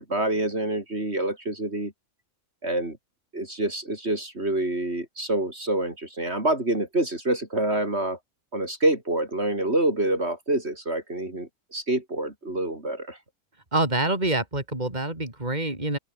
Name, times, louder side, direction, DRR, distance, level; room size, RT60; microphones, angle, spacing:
voice 1, 0.0-1.9 2.6-3.0 3.3-8.2 8.5-13.2, right 1 dB, 50° right, 5.3 m, -27 dB
voice 2, 13.7-16.0, right 2 dB, 30° right, 4.9 m, -26 dB
open air
omnidirectional pair, 1.4 m